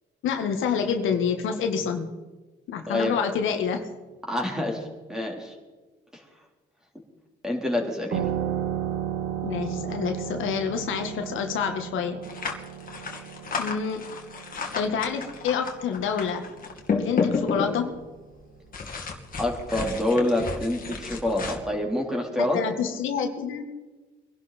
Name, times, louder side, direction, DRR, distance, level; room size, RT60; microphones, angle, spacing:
voice 1, 0.2-2.1 2.7-3.9 9.4-12.2 13.6-14.0 14.7-16.5 17.0-17.9 22.4-23.6, left 6 dB, 80° left, 5 dB, 1.8 m, -27 dB
voice 2, 4.3-4.8 5.1-5.5 7.4-8.3 19.4-22.6, left 1 dB, 5° right, 0 dB, 4.0 m, -26 dB
sound 1, 8.1-17.3, right 10 dB, 80° right, 1.7 m, -34 dB
sound 2, 12.2-18.1 18.7-21.5, left 5 dB, 45° left, 2.5 m, -31 dB
23.0 x 11.5 x 4.4 m, 1.3 s
cardioid pair, 90°, 20 cm